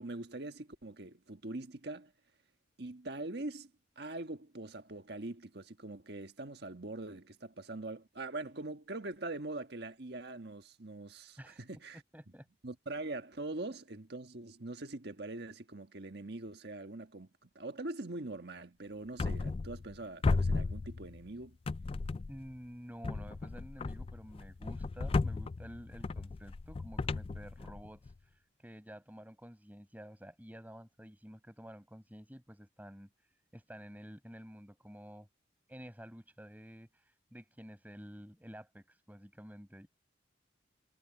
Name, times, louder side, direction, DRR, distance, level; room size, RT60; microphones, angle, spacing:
voice 1, 0.0-2.1 2.8-3.7 4.0-12.0 12.6-21.6, right 2 dB, 60° right, 1.5 m, -43 dB
voice 2, 12.1-12.5 22.3-35.3 35.7-39.9, equal, 10° right, 5.6 m, -51 dB
sound 1, 19.2-20.0 20.2-21.3 21.7-22.5 23.0-28.1, left 3 dB, 30° left, 0.3 m, -35 dB
head